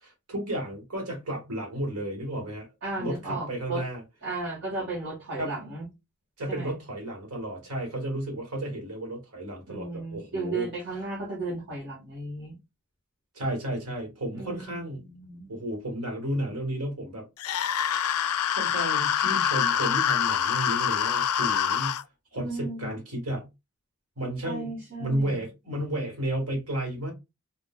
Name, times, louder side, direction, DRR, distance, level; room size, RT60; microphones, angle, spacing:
voice 1, 0.0-2.7 3.0-4.0 5.4-5.5 6.4-10.7 13.3-15.0 15.5-17.2 18.5-22.0 22.3-23.5 24.2-27.1, right 1 dB, 85° right, 1.5 m, -32 dB
voice 2, 2.8-3.8 4.2-5.8 6.5-6.7 9.7-12.5 14.3-15.5 22.3-22.9 24.4-25.4, right 2 dB, 55° right, 1.5 m, -35 dB
sound 1, 17.4-22.0, left 9 dB, 80° left, 0.3 m, -25 dB
3.8 x 2.5 x 2.3 m
head